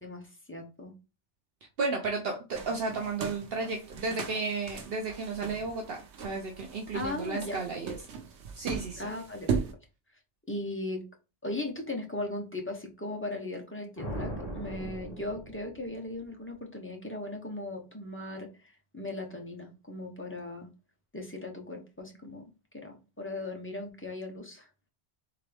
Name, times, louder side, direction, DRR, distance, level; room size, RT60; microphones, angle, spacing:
voice 1, 0.0-0.9 6.9-7.6 9.0-9.6 10.5-11.0 11.4-20.7 21.1-24.7, left 2 dB, 10° left, 1 dB, 1.0 m, -38 dB
voice 2, 1.8-8.0 8.5-9.1, right 3 dB, 65° right, 2 dB, 1.0 m, -33 dB
sound 1, 2.5-9.7, right 6 dB, 90° right, 1.1 m, -38 dB
sound 2, 14.0-16.2, equal, 35° left, 1.4 m, -39 dB
3.9 x 3.5 x 3.4 m, 0.29 s
omnidirectional pair, 1.1 m